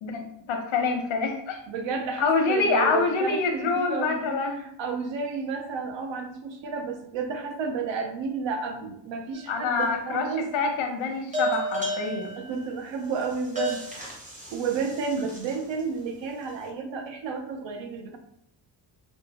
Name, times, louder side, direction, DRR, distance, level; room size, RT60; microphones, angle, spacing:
voice 1, 0.0-1.6 2.2-4.6 9.5-10.2 10.5-12.3, left 4 dB, 85° left, 2 dB, 0.9 m, -26 dB
voice 2, 1.7-10.4 12.3-13.8 14.5-18.2, right 5 dB, 70° right, 4 dB, 0.7 m, -31 dB
sound 1, 9.3-9.9 11.3-15.8, right 1 dB, 15° right, 0.7 m, -33 dB
4.6 x 2.2 x 2.9 m, 0.71 s
wide cardioid pair, 175°, 46 cm